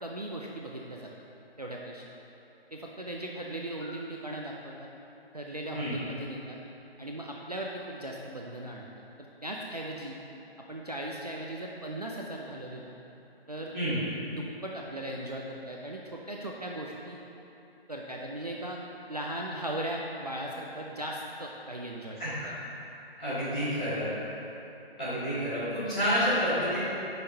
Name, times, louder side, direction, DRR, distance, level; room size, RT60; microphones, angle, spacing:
voice 1, 0.0-1.1 1.6-2.1 2.7-4.9 5.3-6.6 7.0-8.9 9.2-10.2 10.7-12.9 13.5-13.7 14.3-17.2 17.9-18.8 19.1-22.2 22.4-22.5, right 1 dB, 40° right, -2 dB, 0.4 m, -38 dB
voice 2, 23.2-24.1 25.0-26.8, equal, 5° left, -16 dB, 0.8 m, -29 dB
9.5 x 5.8 x 2.7 m, 2.9 s
hypercardioid pair, 170°, 31 cm